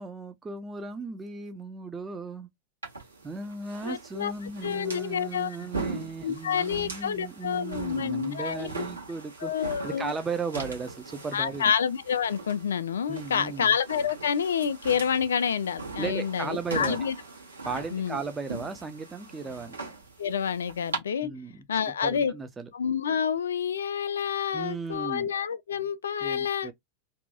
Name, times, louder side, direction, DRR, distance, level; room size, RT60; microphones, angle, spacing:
voice 1, 0.0-2.5 3.2-11.7 13.1-13.7 16.0-17.1 17.6-19.8 21.2-22.7 24.5-25.3 26.2-26.7, right 4 dB, 15° right, 0.4 m, -36 dB
sound 1, 2.8-21.0, right 3 dB, 75° right, 1.2 m, -40 dB
voice 2, 3.8-4.3 4.6-5.6 6.2-8.7 9.4-10.1 11.3-17.2 17.9-18.2 20.2-21.3 21.7-22.3 22.7-26.7, left 7 dB, 65° left, 0.3 m, -28 dB
2.7 x 2.1 x 2.5 m
figure-of-eight pair, 90°, 0 cm